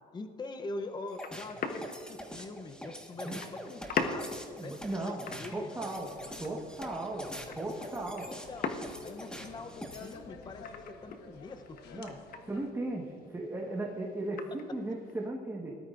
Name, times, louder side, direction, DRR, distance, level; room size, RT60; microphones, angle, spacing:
voice 1, 0.1-4.3 4.6-5.7 8.3-8.7 9.0-10.7 11.0-12.2, left 2 dB, 25° left, 7 dB, 0.7 m, -43 dB
sound 1, 0.7-15.3, left 5 dB, 55° left, 1.1 m, -42 dB
sound 2, 1.1-10.1, equal, 5° left, 1.5 m, -45 dB
voice 2, 4.6-6.1 6.4-7.3 7.6-8.3 11.9-12.2 12.5-14.4 14.7-15.8, right 2 dB, 15° right, -1 dB, 1.4 m, -36 dB
sound 3, 5.7-12.7, left 4 dB, 75° left, 1.3 m, -51 dB
19.0 x 12.5 x 2.6 m, 2.2 s
cardioid pair, 110°, 17 cm